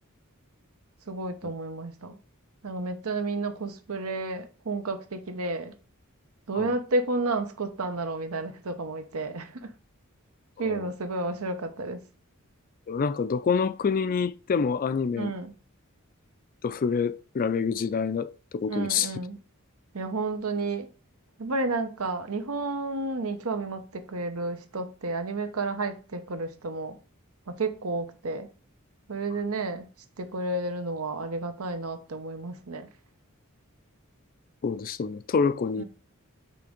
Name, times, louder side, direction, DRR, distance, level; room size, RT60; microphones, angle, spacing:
voice 1, 1.1-2.2 2.6-5.7 6.5-9.7 10.6-12.0 15.1-15.5 18.7-19.4 19.9-20.9 21.4-27.0 27.5-28.5 29.1-29.9 30.2-32.9 35.8-35.9, right 2 dB, 75° right, 0.9 m, -31 dB
voice 2, 12.9-15.3 16.6-19.1 34.6-35.8, left 5 dB, 40° left, 0.3 m, -27 dB
5.8 x 3.5 x 5.1 m
head